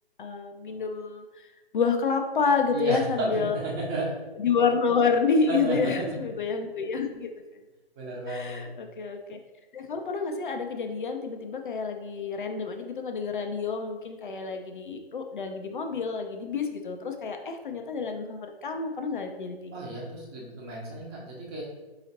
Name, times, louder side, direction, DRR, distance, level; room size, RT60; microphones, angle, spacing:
voice 1, 0.2-3.6 4.4-7.3 8.3-9.4 9.7-19.7, left 5 dB, 55° left, 5 dB, 0.5 m, -28 dB
voice 2, 2.7-4.1 5.5-5.9 8.0-8.7 19.7-21.6, right 2 dB, 25° right, -3 dB, 1.1 m, -32 dB
4.7 x 2.9 x 2.8 m, 1.2 s
figure-of-eight pair, 135°, 31 cm